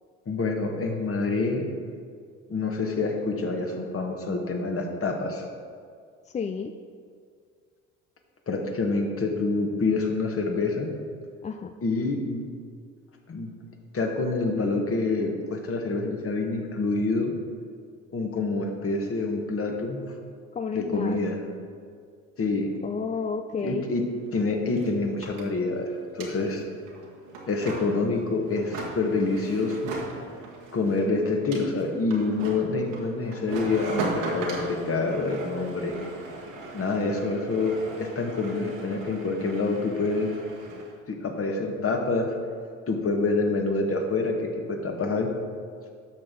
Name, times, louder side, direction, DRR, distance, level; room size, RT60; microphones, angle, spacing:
voice 1, 0.2-1.6 2.5-5.4 8.5-10.9 11.8-12.4 13.3-13.5 13.9-17.3 18.1-20.0 20.7-21.4 22.4-22.7 23.5-24.0 24.3-26.6 27.5-29.9 30.7-35.9 36.7-40.3 41.1-42.4 42.9-45.3, left 3 dB, 35° left, 3 dB, 1.6 m, -27 dB
voice 2, 6.3-6.7 11.4-11.8 20.5-21.2 22.8-23.9, left 5 dB, 20° left, 7 dB, 0.3 m, -31 dB
sound 1, 24.0-24.1 24.3-40.9, right 3 dB, 80° right, 1.6 m, -38 dB
12.0 x 6.5 x 3.9 m, 2.1 s
hypercardioid pair, 60°, 38 cm